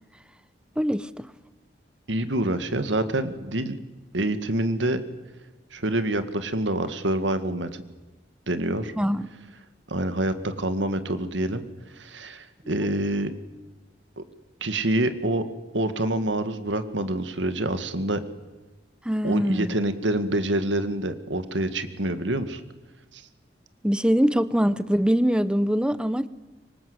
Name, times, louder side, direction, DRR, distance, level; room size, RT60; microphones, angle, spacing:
voice 1, 0.8-1.3 9.0-9.3 19.0-19.7 23.8-26.3, equal, 5° right, 15 dB, 0.8 m, -23 dB
voice 2, 2.1-3.8 4.1-5.0 5.7-7.8 8.5-8.9 9.9-11.6 12.0-13.3 14.2-14.3 14.6-15.4 15.7-18.2 19.2-22.6 23.1-23.2, right 1 dB, 90° right, 10 dB, 2.1 m, -26 dB
25.0 x 24.5 x 8.1 m, 1.1 s
head